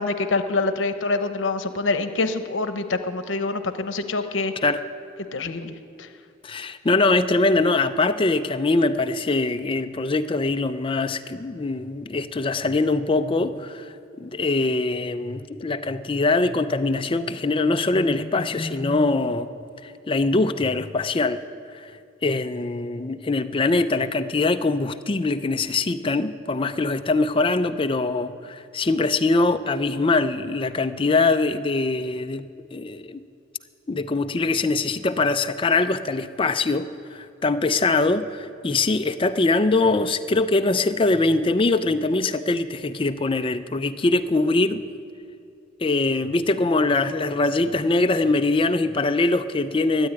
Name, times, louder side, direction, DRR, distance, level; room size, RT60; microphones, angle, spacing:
voice 1, 0.0-4.5 5.3-6.1, left 3 dB, 90° left, 9 dB, 0.9 m, -26 dB
voice 2, 6.4-13.8 14.2-19.5 19.8-21.4 21.7-21.9 22.2-32.5 32.7-33.2 33.9-44.8 45.8-50.1, left 3 dB, 30° left, 9 dB, 0.5 m, -22 dB
13.0 x 8.7 x 9.8 m, 2.5 s
head